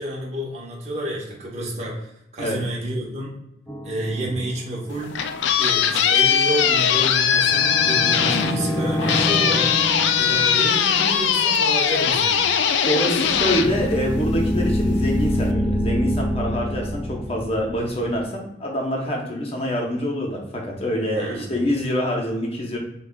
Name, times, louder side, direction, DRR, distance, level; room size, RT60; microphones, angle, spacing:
voice 1, 0.0-3.4 3.8-5.1 5.6-9.8 10.2-12.5 21.1-21.7, right 1 dB, 40° right, -3 dB, 0.9 m, -29 dB
sound 1, 3.7-5.1 7.4-11.8 13.2-18.2, left 1 dB, 10° left, 0.4 m, -27 dB
sound 2, 4.9-14.6, left 8 dB, 85° left, 0.3 m, -20 dB
voice 2, 12.8-22.8, equal, 35° left, 0 dB, 0.9 m, -25 dB
5.8 x 2.4 x 2.3 m, 0.82 s
head